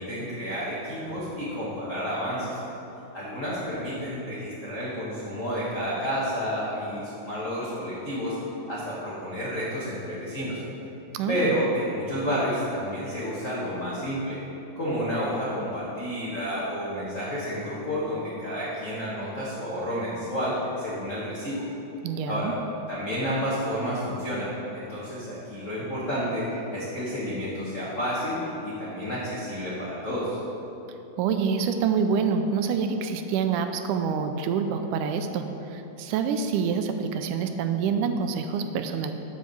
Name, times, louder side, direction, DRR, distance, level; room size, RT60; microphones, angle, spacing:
voice 1, 0.0-2.6 3.1-8.4 8.7-10.6 11.3-14.4 14.8-21.6 22.3-22.5 22.9-30.4, equal, 60° left, -8 dB, 0.8 m, -30 dB
voice 2, 11.1-11.5 22.0-22.5 31.2-39.1, right 6 dB, 80° right, 7 dB, 2.0 m, -26 dB
9.1 x 4.6 x 7.0 m, 3.0 s
omnidirectional pair, 3.8 m